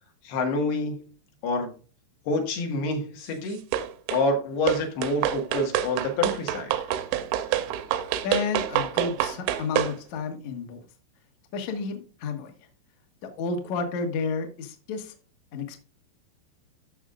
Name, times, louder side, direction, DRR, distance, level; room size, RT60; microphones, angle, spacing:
voice 1, 0.3-1.1 1.4-1.7 2.3-3.6 4.1-6.7, left 2 dB, 70° left, 3 dB, 3.5 m, -27 dB
sound 1, 3.7-4.3 4.7-10.0, right 12 dB, 90° right, 3.1 m, -27 dB
voice 2, 8.2-10.8 11.5-12.5 13.2-15.1 15.5-15.8, left 4 dB, 85° left, 5 dB, 1.5 m, -31 dB
13.0 x 6.1 x 2.4 m, 0.36 s
omnidirectional pair, 5.2 m